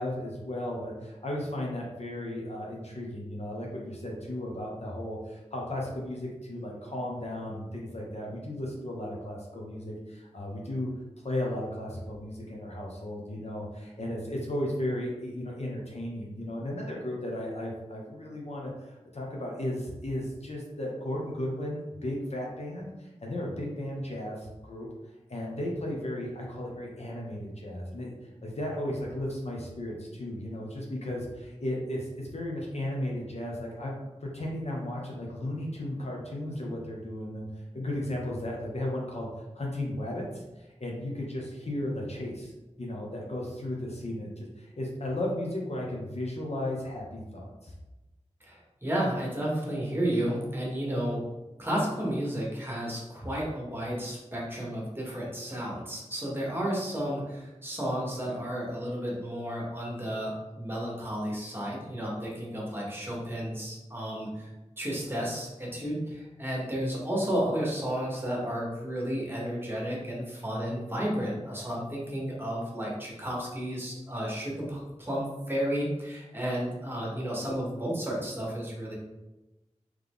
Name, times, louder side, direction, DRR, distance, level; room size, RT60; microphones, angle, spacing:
voice 1, 0.0-10.9 11.2-24.9 25.3-28.1 28.4-37.5 37.7-39.3 39.5-42.5 42.8-47.7, left 1 dB, 60° left, -2 dB, 0.9 m, -35 dB
voice 2, 48.4-51.2 51.6-64.5 64.8-78.9, equal, 20° right, -4 dB, 1.3 m, -32 dB
3.9 x 3.2 x 3.5 m, 1.0 s
wide cardioid pair, 70°, 12 cm